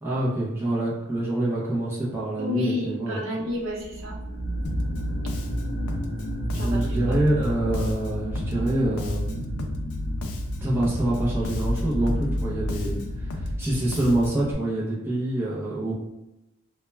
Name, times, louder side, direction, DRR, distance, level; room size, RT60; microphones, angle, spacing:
voice 1, 0.0-3.2 6.6-9.6 10.6-15.9, right 1 dB, 10° right, -8 dB, 0.5 m, -26 dB
voice 2, 2.4-4.2 6.5-7.2, left 2 dB, 65° right, -3 dB, 0.7 m, -31 dB
sound 1, 3.7-14.3, equal, 20° left, 0.9 m, -30 dB
Bass guitar, 4.6-14.5, left 2 dB, 80° left, 0.4 m, -34 dB
2.2 x 2.1 x 3.1 m, 0.94 s
head